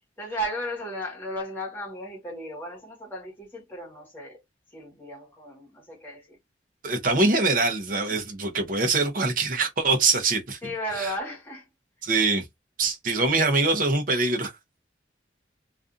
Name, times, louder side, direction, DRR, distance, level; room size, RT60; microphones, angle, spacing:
voice 1, 0.2-4.4 4.7-6.4 7.2-7.5 10.6-11.7, equal, 10° left, 1.1 m, -35 dB
voice 2, 6.8-10.6 11.0-11.1 12.0-12.5 12.8-14.5, right 3 dB, 50° right, 0.6 m, -23 dB
2.4 x 2.4 x 2.5 m
head